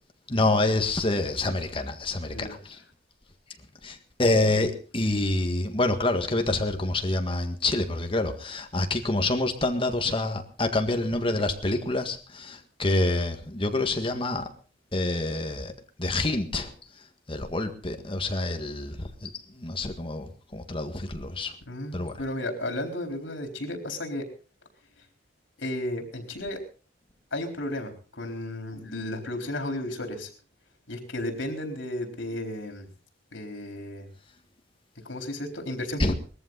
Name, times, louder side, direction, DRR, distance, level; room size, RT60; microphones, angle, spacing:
voice 1, 0.3-2.8 3.8-14.5 14.9-15.7 16.0-16.7 17.3-21.5 21.9-22.1 36.0-36.1, left 2 dB, 30° left, 6 dB, 1.7 m, -27 dB
voice 2, 21.7-24.2 25.6-26.6 27.3-30.3 30.9-32.9 33.3-34.1 35.0-36.1, left 1 dB, 80° left, 4 dB, 4.1 m, -33 dB
20.5 x 14.0 x 4.0 m, 0.37 s
head